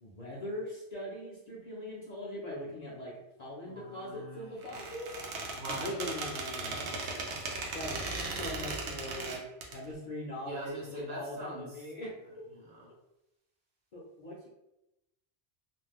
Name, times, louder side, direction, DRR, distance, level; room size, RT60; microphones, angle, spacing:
voice 1, 0.0-6.7 7.7-9.4 9.7-12.4 13.9-14.5, left 1 dB, 45° left, -4 dB, 0.6 m, -41 dB
voice 2, 3.7-4.9 5.5-6.0 6.6-7.5 10.4-11.7 12.5-12.9, right 1 dB, 60° right, -3 dB, 0.8 m, -44 dB
Squeak, 4.6-9.7, right 3 dB, 85° right, 0.9 m, -37 dB
2.4 x 2.1 x 3.4 m, 0.88 s
omnidirectional pair, 1.1 m